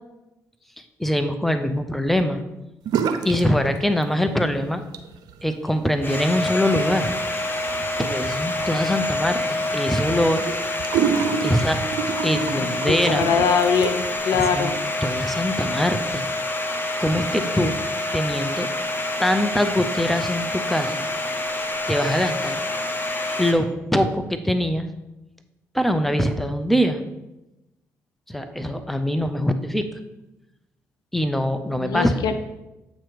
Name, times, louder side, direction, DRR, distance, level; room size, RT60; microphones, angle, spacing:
voice 1, 1.0-2.4 3.2-4.8 5.4-7.2 8.0-10.4 11.4-11.8 12.2-13.3 14.3-14.7 15.0-16.3 17.0-17.7 18.1-18.7 19.2-21.1 21.9-22.6 23.4-24.9 25.7-27.0 28.3-29.9 31.1-32.2, equal, 5° left, 8 dB, 0.7 m, -23 dB
sound 1, 2.8-3.5 3.7-4.4 4.8-14.2, right 7 dB, 70° right, 0.4 m, -29 dB
Domestic sounds home sounds, 6.0-23.5, left 2 dB, 30° left, 1.0 m, -27 dB
voice 2, 12.6-14.8 31.8-32.3, left 6 dB, 70° left, 9 dB, 0.5 m, -22 dB
7.4 x 2.9 x 5.0 m, 0.97 s
hypercardioid pair, 45°, 7 cm